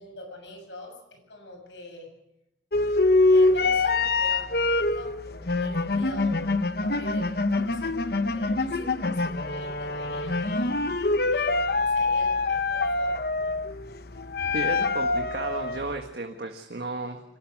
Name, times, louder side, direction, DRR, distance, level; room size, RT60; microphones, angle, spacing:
voice 1, 0.0-2.1 3.3-10.8 11.3-13.4 14.4-15.0 15.8-15.9, left 1 dB, 75° left, 5 dB, 7.0 m, -44 dB
sound 1, 2.7-15.9, left 3 dB, 55° left, 0.9 m, -25 dB
voice 2, 14.5-17.2, right 2 dB, 60° right, 4 dB, 1.7 m, -33 dB
25.0 x 18.5 x 6.1 m, 0.86 s
head